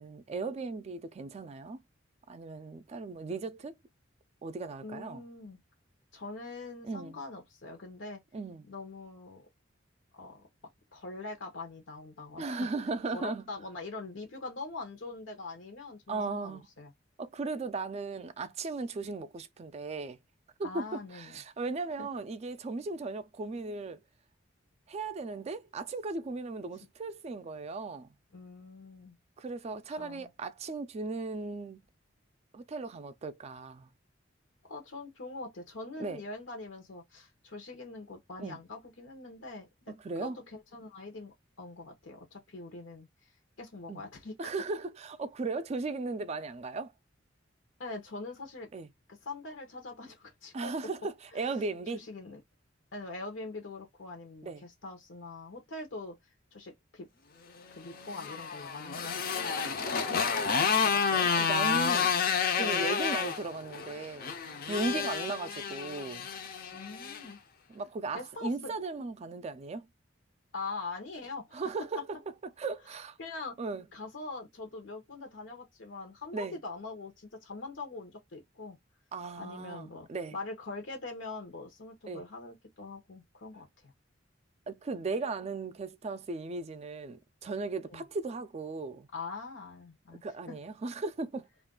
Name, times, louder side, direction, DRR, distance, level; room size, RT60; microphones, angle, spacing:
voice 1, 0.0-1.8 2.3-3.7 4.4-5.2 6.8-7.2 8.3-8.6 12.4-13.4 16.1-16.7 17.2-20.2 20.6-24.0 24.9-28.1 29.4-31.8 32.5-33.9 36.0-36.2 38.4-38.6 40.0-40.4 43.9-44.0 44.4-46.9 48.7-48.9 50.5-52.0 54.4-54.6 59.9-62.1 62.5-64.3 64.7-66.3 67.7-69.9 71.5-72.1 72.6-73.2 73.6-73.8 76.3-76.6 79.1-80.4 82.1-82.2 84.7-89.1 90.2-91.5, right 3 dB, 35° right, 0.3 m, -37 dB
voice 2, 4.8-5.6 6.1-8.2 8.6-9.5 10.1-10.4 10.9-12.7 13.1-16.9 20.6-21.4 22.0-22.1 26.8-26.9 28.3-29.2 30.0-30.3 34.7-43.3 43.6-44.3 47.8-48.7 49.1-50.7 51.3-51.6 51.9-52.4 52.9-56.2 56.5-57.1 57.7-59.3 62.6-62.9 64.9-65.0 66.7-67.4 68.1-68.7 70.5-71.7 73.2-73.6 73.9-78.8 79.4-83.9 87.8-88.0 89.1-90.2, left 3 dB, 85° left, 0.8 m, -43 dB
Motorcycle, 57.8-67.2, left 6 dB, 50° left, 0.5 m, -30 dB
2.4 x 2.2 x 3.6 m
head